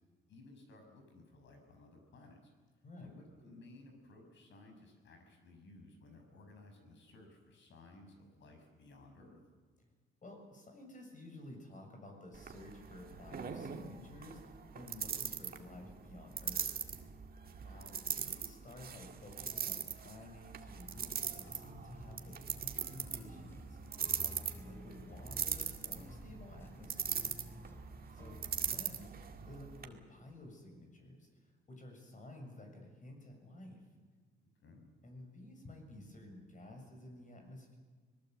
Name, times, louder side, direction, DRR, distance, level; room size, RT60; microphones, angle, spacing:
voice 1, 0.3-2.4 3.0-9.4 17.5-17.7 24.1-24.3 34.6-34.9, left 2 dB, 70° left, 4 dB, 6.6 m, -58 dB
voice 2, 2.8-3.2 10.2-14.4 14.7-16.7 17.6-23.8 24.2-27.4 28.1-29.1 29.5-31.3 31.7-33.8 35.0-37.8, left 1 dB, 40° left, 3 dB, 7.2 m, -52 dB
sound 1, 12.3-29.9, right 7 dB, 50° right, 1.9 m, -41 dB
sound 2, 20.7-28.8, equal, 10° left, 3.0 m, -53 dB
25.5 x 19.5 x 7.9 m, 1.4 s
cardioid pair, 90°, 20 cm